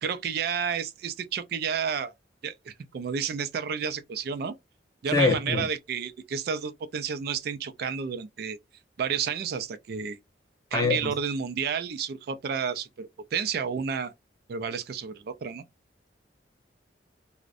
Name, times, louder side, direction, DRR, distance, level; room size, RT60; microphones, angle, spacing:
voice 1, 0.0-2.1 2.4-4.6 5.0-8.6 9.0-10.2 10.7-14.1 14.5-15.6, right 6 dB, 60° right, 0.3 m, -31 dB
voice 2, 5.1-5.6 10.7-11.1, left 3 dB, 20° left, 0.5 m, -24 dB
2.4 x 2.0 x 2.5 m
head